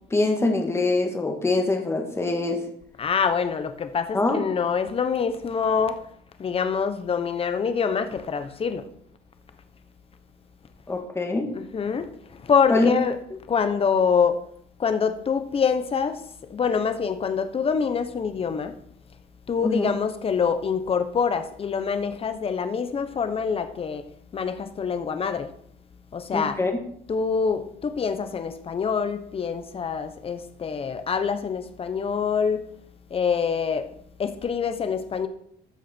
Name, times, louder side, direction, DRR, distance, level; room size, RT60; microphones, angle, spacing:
voice 1, 0.1-2.6 4.1-4.4 10.9-11.5 12.7-12.9 19.6-19.9 26.3-26.7, left 2 dB, 15° left, 1.8 m, -23 dB
voice 2, 3.0-6.0 6.4-8.8 11.5-13.1 13.5-14.4 14.8-16.2 16.5-18.7 19.5-24.0 24.3-25.5 26.1-26.6 27.1-32.7 33.1-33.9 34.2-35.3, left 6 dB, 35° left, 1.1 m, -25 dB
14.0 x 6.3 x 4.5 m
cardioid pair, 110°, 17 cm